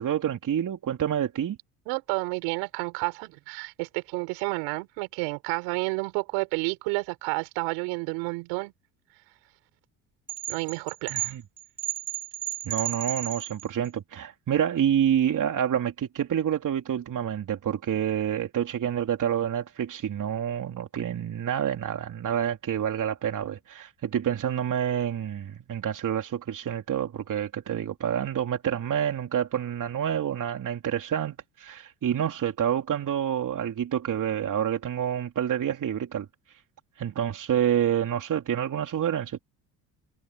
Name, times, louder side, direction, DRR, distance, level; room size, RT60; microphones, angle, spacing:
voice 1, 0.0-1.6 11.1-11.4 12.7-36.3 37.0-39.4, right 9 dB, 50° right, 3.5 m, -28 dB
voice 2, 1.9-8.7 10.5-11.3, right 29 dB, 80° right, 5.6 m, -30 dB
sound 1, 10.3-13.9, right 17 dB, 30° right, 7.5 m, -33 dB
hypercardioid pair, 70°, 40 cm